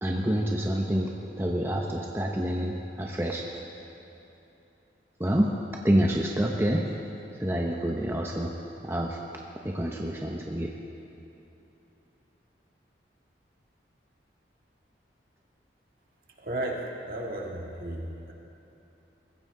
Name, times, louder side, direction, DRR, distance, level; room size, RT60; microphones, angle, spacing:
voice 1, 0.0-1.1 1.4-3.4 5.2-5.5 5.8-6.9 7.4-8.5 8.8-9.2 9.6-10.7, equal, 15° right, -1 dB, 0.8 m, -27 dB
voice 2, 16.4-18.3, right 1 dB, 50° right, -1 dB, 1.9 m, -34 dB
21.5 x 16.0 x 3.8 m, 2.9 s
head